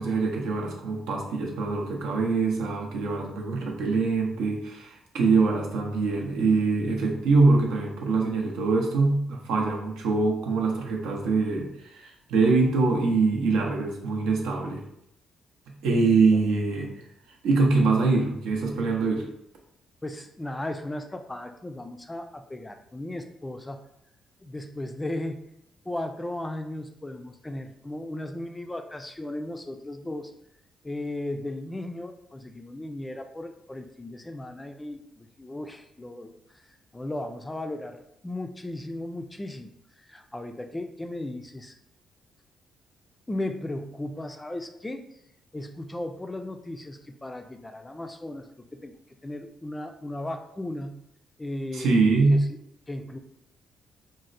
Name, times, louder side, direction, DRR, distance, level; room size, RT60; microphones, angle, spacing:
voice 1, 0.0-14.8 15.8-16.9 17.4-19.3 51.7-52.4, right 3 dB, 85° right, 0 dB, 0.7 m, -24 dB
voice 2, 20.0-23.8 24.4-25.4 25.9-30.3 30.8-36.3 36.9-39.7 40.1-41.7 43.3-45.1 45.5-48.9 49.2-51.0 51.4-52.0 52.3-52.4 52.9-53.2, left 1 dB, 15° left, 6 dB, 0.3 m, -36 dB
4.0 x 2.1 x 2.5 m, 0.77 s
cardioid pair, 90°, 0 cm